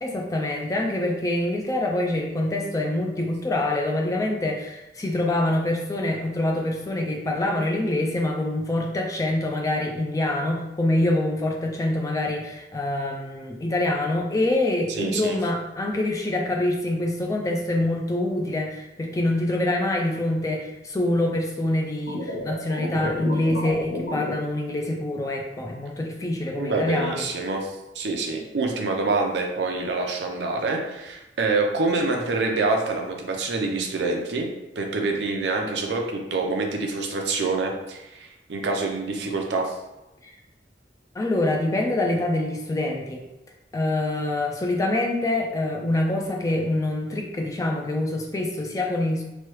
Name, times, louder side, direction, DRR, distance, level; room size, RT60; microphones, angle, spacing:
voice 1, 0.0-27.2 40.2-40.3 41.1-43.2 43.7-49.2, left 1 dB, 20° left, 1 dB, 0.3 m, -25 dB
voice 2, 14.9-15.4 26.6-34.5 34.8-39.7, right 3 dB, 75° right, 1 dB, 0.5 m, -26 dB
sound 1, 22.1-24.3, left 1 dB, 75° left, 0.8 m, -30 dB
3.0 x 2.2 x 3.0 m, 0.96 s
head